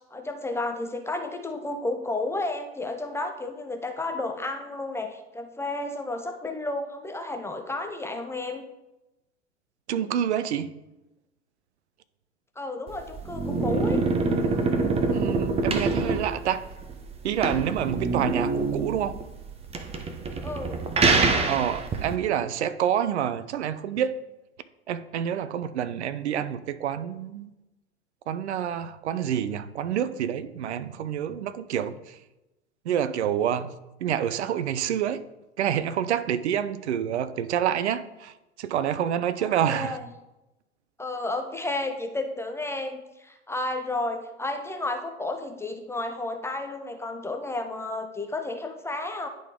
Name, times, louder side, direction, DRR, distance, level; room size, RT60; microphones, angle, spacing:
voice 1, 0.1-8.7 12.6-14.0 20.4-20.8 39.4-40.0 41.0-49.3, left 2 dB, 10° left, 5 dB, 0.4 m, -32 dB
voice 2, 9.9-10.7 15.1-16.6 17.2-19.2 21.5-24.1 24.9-27.5 28.3-32.2 32.9-33.7 34.0-35.2 35.6-40.0, right 9 dB, 70° right, 13 dB, 0.6 m, -27 dB
sound 1, 12.9-22.1, right 3 dB, 15° right, 0.7 m, -26 dB
10.5 x 3.8 x 3.6 m, 0.98 s
figure-of-eight pair, 90°, 35 cm